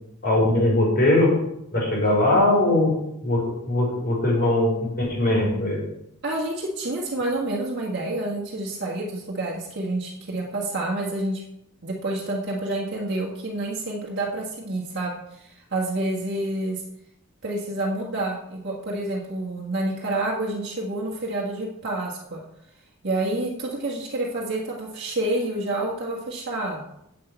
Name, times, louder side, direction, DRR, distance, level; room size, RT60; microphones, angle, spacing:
voice 1, 0.2-1.3 1.7-2.9 3.2-5.8, left 1 dB, 45° left, -3 dB, 4.7 m, -20 dB
voice 2, 6.2-11.4 11.8-16.8 17.4-22.4 23.0-26.8, right 2 dB, 50° right, -3 dB, 1.6 m, -28 dB
8.5 x 6.4 x 8.1 m, 0.81 s
head